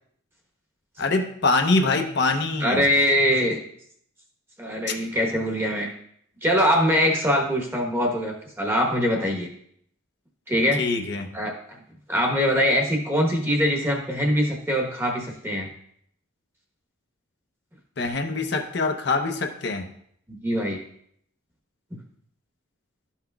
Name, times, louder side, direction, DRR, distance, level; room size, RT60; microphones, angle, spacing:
voice 1, 1.0-2.8 10.8-11.3 18.0-19.9, left 3 dB, 55° left, 4 dB, 0.7 m, -24 dB
voice 2, 2.6-3.6 4.6-5.9 6.4-9.5 10.5-10.8 11.3-11.5 12.1-15.7 20.3-20.8, equal, 10° right, 1 dB, 1.0 m, -23 dB
12.0 x 5.7 x 2.3 m, 0.68 s
head